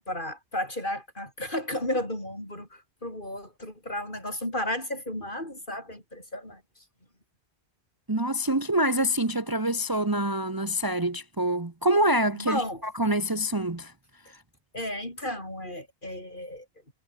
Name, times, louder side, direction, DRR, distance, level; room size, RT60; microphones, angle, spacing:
voice 1, 0.0-6.6 12.4-12.8 14.7-16.6, left 1 dB, 50° left, 8.4 m, -33 dB
voice 2, 8.1-13.9 14.3-14.4, right 1 dB, 20° right, 1.1 m, -26 dB
omnidirectional pair, 1.1 m